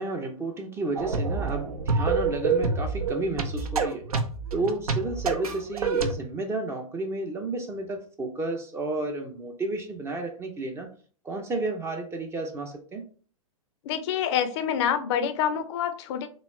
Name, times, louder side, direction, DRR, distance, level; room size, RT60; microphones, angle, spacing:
voice 1, 0.0-4.0 4.5-10.9 11.2-13.0, right 2 dB, 15° right, 0.4 m, -32 dB
sound 1, 1.0-6.1, right 4 dB, 85° right, 0.6 m, -27 dB
voice 2, 13.8-16.3, left 8 dB, 50° left, 0.4 m, -27 dB
3.1 x 3.0 x 3.1 m
hypercardioid pair, 115°, 18 cm